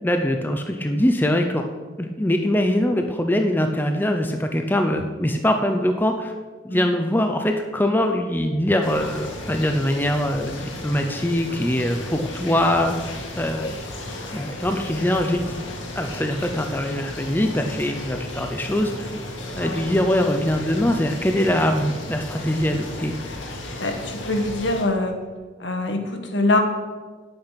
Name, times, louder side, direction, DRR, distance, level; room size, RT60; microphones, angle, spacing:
voice 1, 0.0-1.7 2.0-6.3 6.6-13.7 14.3-15.6 16.0-19.1 19.5-23.1, left 1 dB, 10° left, 5 dB, 0.6 m, -23 dB
sound 1, 8.8-24.8, left 1 dB, 85° left, 2.0 m, -34 dB
voice 2, 23.8-25.1 25.6-26.6, left 2 dB, 70° left, 4 dB, 1.5 m, -24 dB
10.0 x 8.7 x 5.8 m, 1.4 s
head